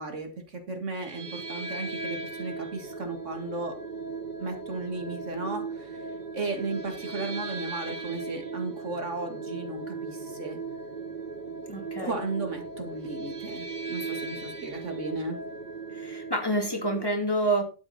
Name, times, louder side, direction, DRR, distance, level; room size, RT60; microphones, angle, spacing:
voice 1, 0.0-3.8 4.4-6.0 6.3-10.6 12.0-15.4, right 3 dB, 70° right, 5 dB, 2.4 m, -35 dB
sound 1, 0.9-17.1, right 3 dB, 35° right, 1.3 m, -37 dB
voice 2, 11.7-12.2 15.9-17.6, right 1 dB, 20° left, 2 dB, 2.6 m, -28 dB
12.0 x 8.0 x 4.2 m, 0.32 s
omnidirectional pair, 1.3 m